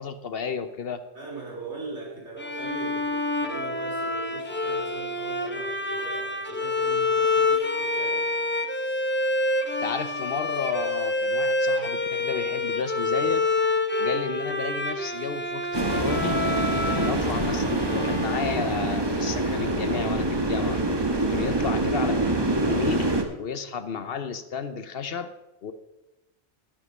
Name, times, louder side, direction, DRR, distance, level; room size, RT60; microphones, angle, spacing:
voice 1, 0.0-1.0 9.8-13.4 14.0-16.4 16.8-20.8 21.3-22.2 22.7-25.3 25.6-25.7, left 6 dB, 60° left, 11 dB, 0.9 m, -32 dB
voice 2, 1.1-8.3, right 3 dB, 75° right, -2 dB, 3.6 m, -40 dB
Bowed string instrument, 2.4-18.9, left 2 dB, 10° left, 0.9 m, -27 dB
sound 1, 15.7-23.2, right 2 dB, 25° right, 1.1 m, -25 dB
11.0 x 8.9 x 5.4 m, 0.97 s
omnidirectional pair, 1.2 m